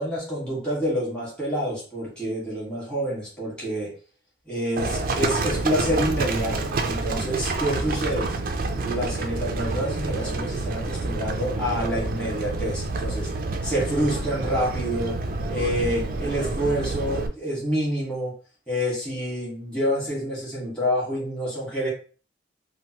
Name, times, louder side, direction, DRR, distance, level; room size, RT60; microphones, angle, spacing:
voice 1, 0.0-3.9 4.5-8.3 8.7-13.3 13.6-15.2 15.5-18.3 18.7-21.9, equal, 5° left, -7 dB, 1.4 m, -27 dB
Livestock farm animals working animals, 4.8-17.3, right 3 dB, 50° right, 0.4 m, -28 dB
3.1 x 2.2 x 2.8 m, 0.38 s
head